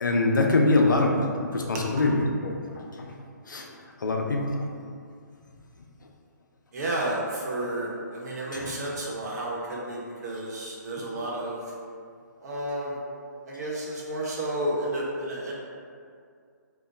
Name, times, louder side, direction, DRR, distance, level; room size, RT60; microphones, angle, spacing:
voice 1, 0.0-3.2 3.5-3.7 4.0-4.8 8.5-8.7, left 2 dB, 80° left, 1 dB, 0.5 m, -24 dB
voice 2, 6.7-11.6 12.4-13.0 13.5-15.5, right 1 dB, 60° right, -5 dB, 0.9 m, -31 dB
2.8 x 2.1 x 3.8 m, 2.2 s
figure-of-eight pair, 135°, 10 cm